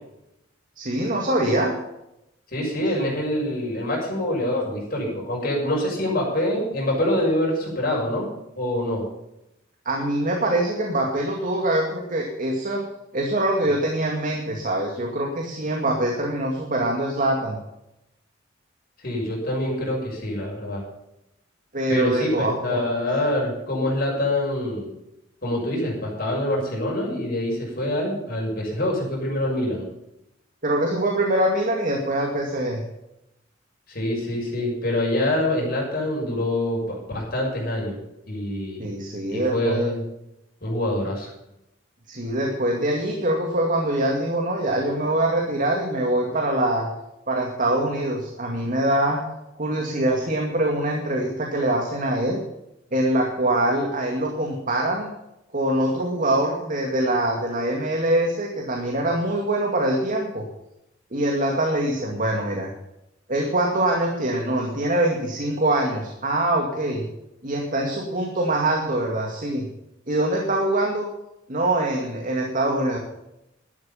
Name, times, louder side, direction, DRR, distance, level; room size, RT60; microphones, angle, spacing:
voice 1, 0.8-1.7 3.0-3.2 9.9-12.8 13.1-17.6 21.7-22.8 30.6-32.8 38.8-39.8 42.1-46.9 47.3-49.2 49.6-52.4 52.9-55.1 55.5-60.4 61.1-62.7 63.3-67.1 67.4-69.7 70.1-71.1 71.5-73.0, right 1 dB, 45° right, 1 dB, 2.2 m, -24 dB
voice 2, 2.5-8.3 8.5-9.0 19.0-20.8 21.9-24.9 25.4-29.8 33.9-38.0 38.3-38.9 39.3-40.0 40.6-41.3, left 1 dB, 50° left, -2 dB, 6.4 m, -25 dB
12.5 x 11.0 x 5.7 m, 0.86 s
head